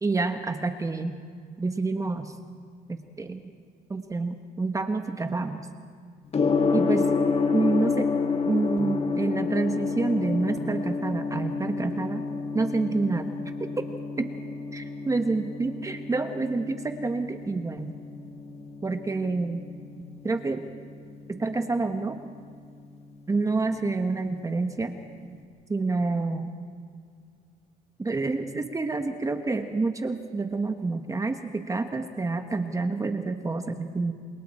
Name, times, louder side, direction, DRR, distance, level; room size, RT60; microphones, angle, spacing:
voice 1, 0.0-1.2 1.6-2.4 2.9-3.5 3.9-5.7 6.7-7.1 7.5-8.1 8.5-12.3 12.5-13.3 13.6-13.9 14.2-14.3 14.7-17.9 18.8-19.7 20.2-20.6 21.3-22.2 23.3-24.9 25.7-26.5 28.0-34.1, right 3 dB, 20° right, 7 dB, 1.2 m, -28 dB
Gong, 6.3-25.3, left 4 dB, 35° left, 1.9 m, -30 dB
28.0 x 27.0 x 4.4 m, 2.3 s
cardioid pair, 110°, 17 cm